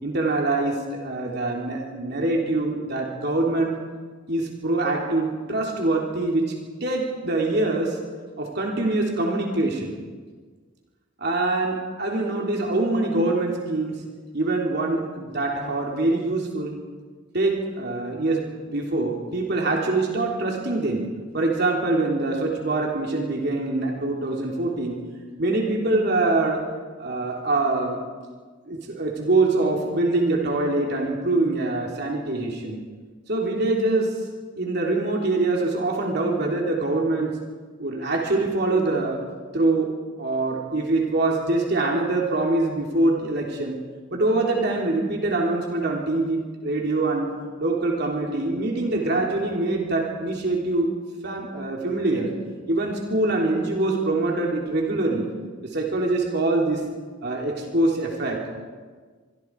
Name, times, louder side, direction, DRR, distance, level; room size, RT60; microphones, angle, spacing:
voice 1, 0.0-3.7 4.3-6.4 6.8-8.0 8.4-10.0 11.2-14.0 14.3-16.7 17.3-21.0 21.3-25.0 25.4-26.6 27.0-28.0 28.7-32.8 33.3-34.1 34.6-37.4 37.8-39.2 39.5-39.9 40.2-43.8 44.1-47.3 47.6-50.9 51.2-52.3 52.7-55.3 55.7-56.8 57.2-58.4, right 2 dB, 55° right, -1 dB, 3.5 m, -24 dB
24.5 x 24.5 x 4.8 m, 1.5 s
head